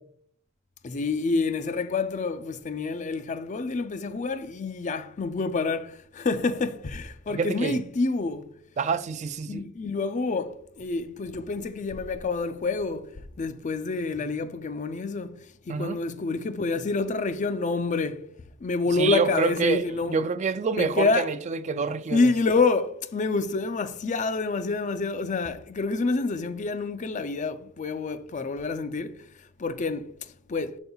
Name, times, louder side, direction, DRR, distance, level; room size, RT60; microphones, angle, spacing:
voice 1, 0.8-8.6 9.5-15.4 15.7-18.3 18.6-20.2 20.8-21.3 22.1-30.8, left 3 dB, 40° left, 0.4 m, -28 dB
voice 2, 7.3-7.8 8.8-9.7 15.7-16.0 19.0-22.3, right 5 dB, 35° right, 0.4 m, -27 dB
7.7 x 5.4 x 2.3 m
head